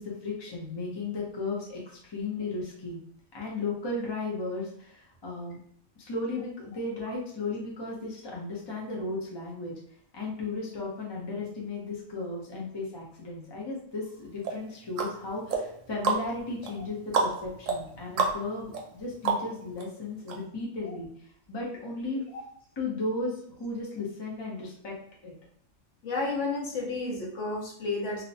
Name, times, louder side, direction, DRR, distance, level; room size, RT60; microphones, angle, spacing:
voice 1, 0.0-3.0 3.3-5.6 6.0-9.7 10.1-21.1 21.5-22.2 22.8-25.0 25.2-25.3, left 3 dB, 30° left, -3 dB, 0.5 m, -35 dB
sound 1, 14.4-19.8 20.3-20.4, right 4 dB, 75° right, 0.9 m, -31 dB
voice 2, 26.0-28.2, left 3 dB, 65° left, -2 dB, 1.0 m, -31 dB
2.9 x 2.0 x 2.6 m, 0.63 s
omnidirectional pair, 1.4 m